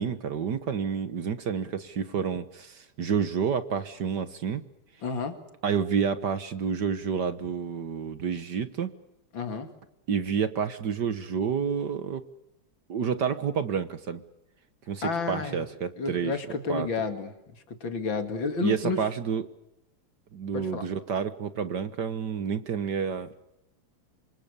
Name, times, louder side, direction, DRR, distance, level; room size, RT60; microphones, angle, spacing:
voice 1, 0.0-4.6 5.6-8.9 10.1-12.3 12.9-14.2 14.9-16.3 16.7-16.9 18.6-19.4 20.3-23.4, right 7 dB, 55° right, 12 dB, 1.6 m, -29 dB
voice 2, 5.0-5.4 9.3-9.7 15.0-15.6 16.0-17.3 17.7-19.0 20.5-20.8, left 4 dB, 60° left, 9 dB, 3.0 m, -30 dB
28.0 x 24.5 x 6.8 m, 0.87 s
omnidirectional pair, 2.4 m